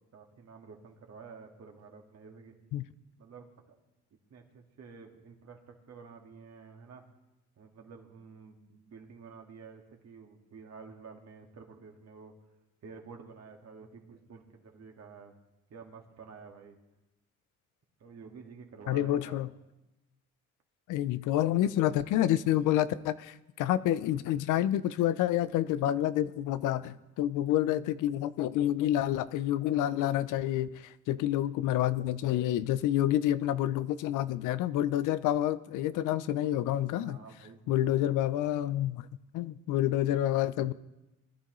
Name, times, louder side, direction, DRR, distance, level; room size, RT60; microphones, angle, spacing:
voice 1, 0.1-2.5 3.2-3.5 4.3-7.0 7.6-12.3 12.8-15.3 15.7-16.8 18.0-19.4 37.0-38.3, right 5 dB, 55° right, 2 dB, 1.9 m, -50 dB
voice 2, 18.9-19.5 20.9-37.2 37.7-39.1 39.3-40.7, left 12 dB, 90° left, 16 dB, 0.5 m, -28 dB
20.0 x 11.0 x 3.1 m, 0.98 s
cardioid pair, 90°, 30 cm